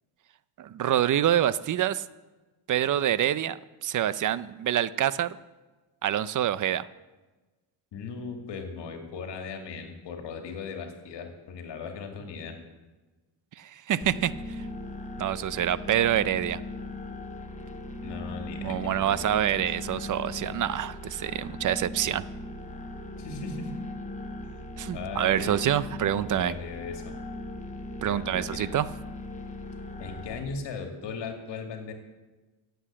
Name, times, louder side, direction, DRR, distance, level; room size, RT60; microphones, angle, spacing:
voice 1, 0.6-2.0 2.7-5.4 6.0-6.9 13.6-14.7 15.2-16.6 18.6-22.2 24.8-26.5 28.0-28.9, right 11 dB, 45° right, 17 dB, 0.6 m, -26 dB
voice 2, 7.9-12.6 18.0-19.7 23.2-23.7 24.4-24.7 24.9-25.6 26.2-27.2 28.0-28.7 30.0-31.9, left 5 dB, 70° left, 4 dB, 2.4 m, -38 dB
sound 1, 14.0-30.4, left 2 dB, 15° left, 1.4 m, -39 dB
16.0 x 8.0 x 7.6 m, 1.2 s
cardioid pair, 115°, 44 cm